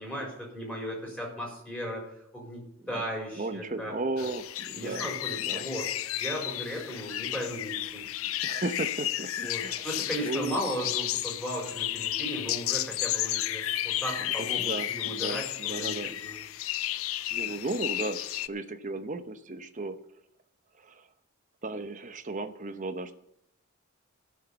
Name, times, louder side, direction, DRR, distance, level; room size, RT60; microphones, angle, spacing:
voice 1, 0.0-2.1 2.3-2.6 2.9-3.9 4.2-4.3 4.7-8.3 9.4-16.4, equal, 5° left, -2 dB, 4.3 m, -36 dB
voice 2, 3.4-5.1 5.3-5.7 8.4-9.9 10.2-10.6 14.2-16.2 17.3-20.0 20.8-21.1 21.6-23.1, right 2 dB, 35° right, 8 dB, 0.9 m, -35 dB
sound 1, 4.2-18.5, left 13 dB, 65° left, 0.4 m, -32 dB
15.0 x 6.6 x 7.0 m, 0.79 s
head